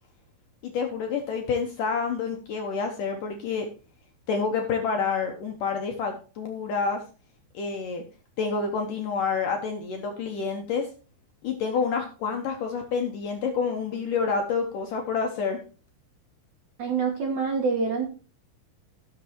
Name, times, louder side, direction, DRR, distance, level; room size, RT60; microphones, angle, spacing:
voice 1, 0.6-3.7 4.3-7.0 7.5-8.0 8.4-10.9 11.4-15.6, left 5 dB, 65° left, 3 dB, 2.2 m, -28 dB
voice 2, 16.8-18.1, right 5 dB, 60° right, 1 dB, 2.2 m, -26 dB
17.5 x 6.7 x 3.0 m, 0.34 s
omnidirectional pair, 5.0 m